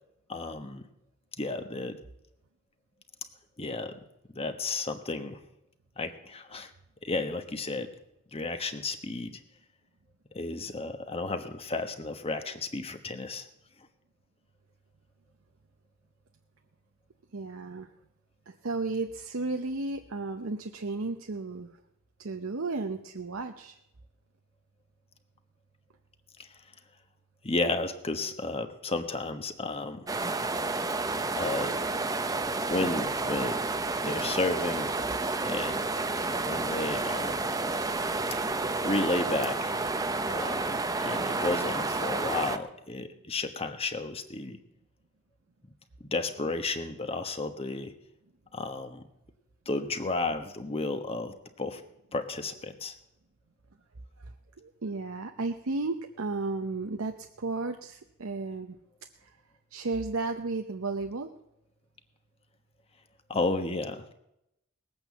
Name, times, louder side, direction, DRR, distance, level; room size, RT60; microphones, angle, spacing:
voice 1, 0.3-0.8 1.4-2.0 3.6-4.0 4.3-5.4 6.0-6.7 7.0-7.9 8.3-9.4 10.3-13.5 26.4-26.5 27.4-30.1 31.4-31.8 32.7-33.6 34.0-34.9 35.4-35.9 36.4-37.5 38.8-39.7 40.3-44.6 46.1-47.9 48.5-49.0 49.7-51.8 52.1-52.9 63.3-64.0, left 2 dB, 30° left, 7 dB, 1.2 m, -32 dB
voice 2, 17.3-17.9 18.5-21.8 22.2-23.8 54.2-58.8 59.2-59.4 59.7-61.3, right 3 dB, 80° right, 5 dB, 0.8 m, -34 dB
sound 1, 30.1-42.6, right 3 dB, 15° right, 0.7 m, -30 dB
19.5 x 8.7 x 7.2 m, 0.84 s
head